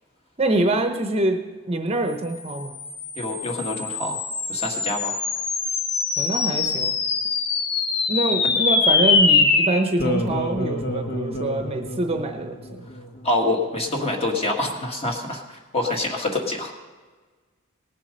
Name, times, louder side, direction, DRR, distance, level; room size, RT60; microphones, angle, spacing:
voice 1, 0.4-1.4 1.7-2.7 6.2-6.9 8.1-12.6, right 2 dB, 30° right, 5 dB, 0.8 m, -24 dB
sound 1, 2.5-13.2, left 4 dB, 50° left, 1.1 m, -24 dB
voice 2, 3.2-4.2 4.5-5.2 8.4-8.5 13.2-15.4 15.7-16.7, left 2 dB, 30° left, 1 dB, 1.7 m, -26 dB
18.5 x 7.4 x 5.3 m, 1.4 s
head